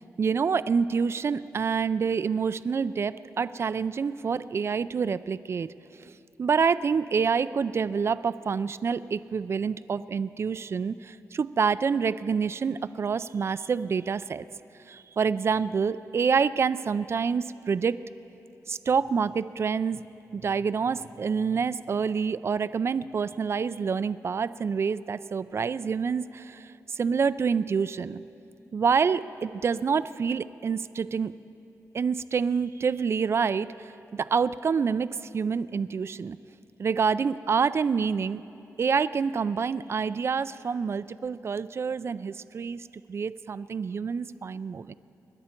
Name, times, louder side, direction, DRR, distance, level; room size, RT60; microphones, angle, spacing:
voice 1, 0.2-14.5 14.9-18.0 18.7-20.0 20.3-28.2 28.7-31.3 31.9-36.4 36.8-38.4 38.8-44.9, right 6 dB, 45° right, 15 dB, 0.4 m, -27 dB
27.0 x 10.5 x 4.5 m, 2.8 s
wide cardioid pair, 120°, 6 cm